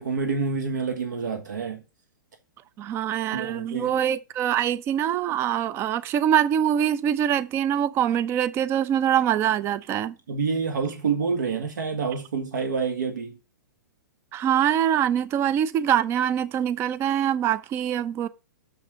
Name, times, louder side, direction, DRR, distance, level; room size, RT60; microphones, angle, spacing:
voice 1, 0.0-1.8 3.3-4.0 10.3-13.4, right 5 dB, 70° right, 1.5 m, -27 dB
voice 2, 2.8-10.2 14.3-18.3, right 10 dB, 25° right, 0.5 m, -24 dB
6.9 x 6.5 x 5.0 m
figure-of-eight pair, 115°, 10 cm